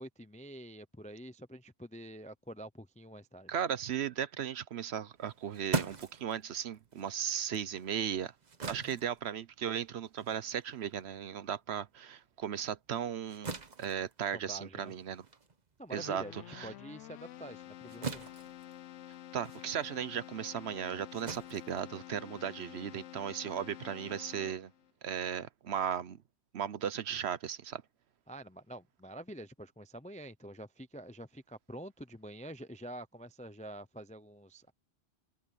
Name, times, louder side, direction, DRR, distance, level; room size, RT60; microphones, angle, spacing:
voice 1, 0.0-3.5 8.7-9.0 14.3-14.9 15.8-18.3 28.3-34.7, right 1 dB, 10° left, 0.4 m, -47 dB
voice 2, 3.5-8.3 8.6-15.2 15.9-16.7 19.3-24.7 25.0-26.2 26.5-27.8, right 8 dB, 65° right, 0.9 m, -36 dB
sound 1, 5.2-12.0 12.3-22.5, right 4 dB, 35° right, 1.2 m, -43 dB
Keyboard (musical), 15.9-24.9, left 13 dB, 85° left, 0.9 m, -49 dB
omnidirectional pair, 1.3 m